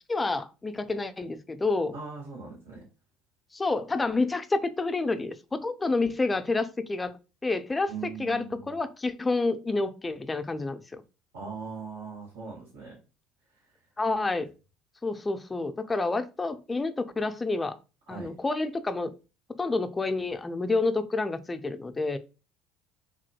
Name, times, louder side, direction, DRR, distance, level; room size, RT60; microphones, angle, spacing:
voice 1, 0.1-2.0 3.5-7.1 7.4-11.0 14.0-14.5 15.0-17.8 18.1-19.1 19.5-22.2, left 3 dB, 20° left, 0.4 m, -29 dB
voice 2, 1.9-2.8 7.9-8.7 11.3-13.0 18.1-18.4, right 5 dB, 90° right, 1.5 m, -40 dB
2.8 x 2.7 x 2.7 m
hypercardioid pair, 70°, 0 cm